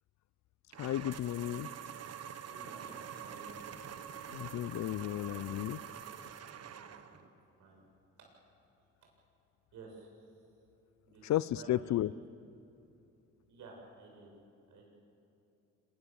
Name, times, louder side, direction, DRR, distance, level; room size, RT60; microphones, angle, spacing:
sound 1, 0.7-7.3, right 8 dB, 55° right, 1.4 m, -46 dB
voice 1, 0.8-1.7 4.3-5.8 11.2-12.1, left 13 dB, 65° left, 20 dB, 0.7 m, -33 dB
voice 2, 2.5-3.6 6.7-7.8 9.7-10.1 11.0-11.2 11.5-12.0 13.5-14.3 14.7-14.9, right 3 dB, 80° right, 0 dB, 7.7 m, -53 dB
26.5 x 23.5 x 7.3 m, 2.6 s
cardioid pair, 90°, 30 cm